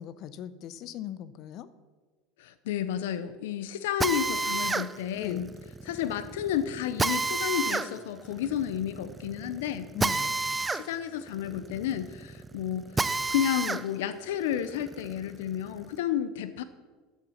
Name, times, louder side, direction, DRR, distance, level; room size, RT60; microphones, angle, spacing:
voice 1, 0.0-1.7 5.1-5.4 9.9-10.4, left 11 dB, 50° left, 15 dB, 0.7 m, -39 dB
voice 2, 2.4-5.5 5.8-9.9 10.7-16.6, left 10 dB, 85° left, 12 dB, 0.6 m, -31 dB
Drill, 4.0-13.8 14.3-15.9, right 3 dB, 15° right, 0.4 m, -31 dB
11.0 x 7.2 x 6.3 m, 1.4 s
supercardioid pair, 125°, 0 cm